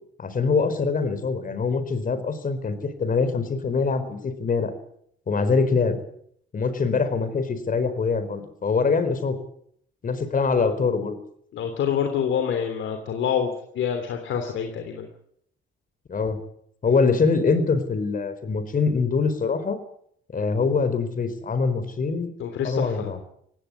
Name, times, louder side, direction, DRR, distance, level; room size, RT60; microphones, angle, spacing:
voice 1, 0.2-4.7 5.3-6.0 6.5-9.4 10.0-11.2 16.1-16.4 16.8-19.8 20.3-22.3 22.6-23.2, left 4 dB, 45° left, 11 dB, 4.3 m, -24 dB
voice 2, 11.5-15.1 22.4-23.2, left 8 dB, 75° left, 5 dB, 3.2 m, -27 dB
18.5 x 16.5 x 9.7 m, 0.69 s
cardioid pair, 90°, 20 cm